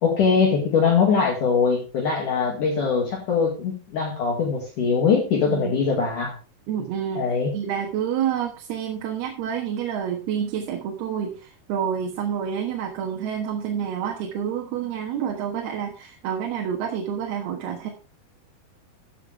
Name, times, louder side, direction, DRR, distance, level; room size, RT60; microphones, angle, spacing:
voice 1, 0.0-6.4 7.2-7.5, left 5 dB, 55° left, -1 dB, 3.3 m, -22 dB
voice 2, 6.7-7.3 7.5-17.9, right 8 dB, 75° right, 2 dB, 3.4 m, -28 dB
14.0 x 8.2 x 3.4 m, 0.33 s
omnidirectional pair, 4.7 m